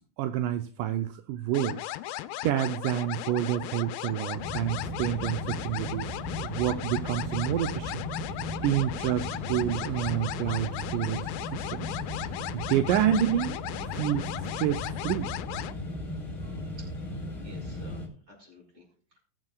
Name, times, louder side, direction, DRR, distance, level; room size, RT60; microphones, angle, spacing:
voice 1, 0.2-1.9 2.4-6.1 6.4-8.0 8.6-11.9 12.5-13.6 13.9-15.3, right 11 dB, 80° right, 7 dB, 2.0 m, -28 dB
sound 1, 1.5-15.7, left 15 dB, 85° left, 2.3 m, -37 dB
sound 2, 4.4-18.1, left 1 dB, 30° left, 1.7 m, -37 dB
voice 2, 17.1-19.2, left 1 dB, 30° right, -1 dB, 6.0 m, -52 dB
20.0 x 7.6 x 2.3 m, 0.43 s
omnidirectional pair, 4.0 m